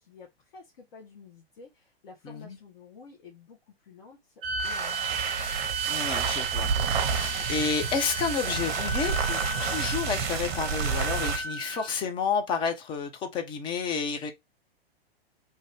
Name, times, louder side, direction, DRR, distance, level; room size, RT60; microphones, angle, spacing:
voice 1, 0.0-5.4, left 4 dB, 55° left, 1.1 m, -51 dB
voice 2, 2.2-2.6 5.9-6.7 7.0-14.3, left 5 dB, 15° left, 0.4 m, -30 dB
sound 1, 4.4-11.9, right 4 dB, 15° right, 1.1 m, -34 dB
sound 2, 4.4-11.5, right 6 dB, 50° right, 0.7 m, -30 dB
2.8 x 2.5 x 3.2 m
figure-of-eight pair, 110°, 31 cm